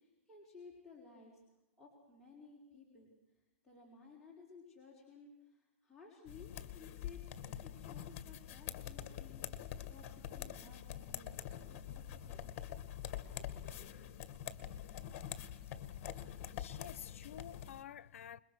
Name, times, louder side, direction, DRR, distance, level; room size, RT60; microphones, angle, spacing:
voice 1, 0.0-1.4 1.8-3.1 3.6-7.2 7.6-12.6 13.1-13.9, left 4 dB, 5° left, 5.5 m, -58 dB
sound 1, 6.3-17.8, left 10 dB, 40° left, 2.1 m, -46 dB
voice 2, 16.1-18.4, left 9 dB, 75° left, 0.8 m, -50 dB
28.5 x 22.0 x 6.5 m
hypercardioid pair, 145°, 7 cm